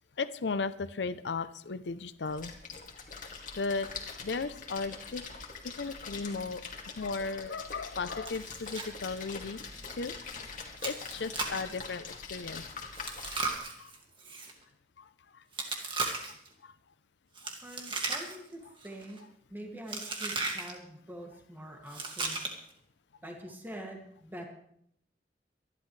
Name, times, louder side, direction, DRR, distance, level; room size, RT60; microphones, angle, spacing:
voice 1, 0.2-2.5 3.5-3.9 4.2-9.6 9.9-10.1 10.6-12.6 13.8-13.9 15.0-15.4 16.6-16.7, left 4 dB, 85° left, 14 dB, 0.6 m, -36 dB
Splash splatter, 2.2-13.6, left 5 dB, 50° left, 2.4 m, -44 dB
Chewing mastication, 8.3-8.9 9.2-9.3 9.8-9.9 10.8-11.7 12.9-14.5 15.5-16.5 17.4-18.5 18.8-19.2 19.9-20.7 21.9-22.7, right 3 dB, 30° right, 2.1 m, -36 dB
voice 2, 17.6-22.4 23.2-24.5, right 1 dB, 10° right, 1 dB, 2.2 m, -45 dB
24.5 x 11.5 x 3.3 m, 0.70 s
head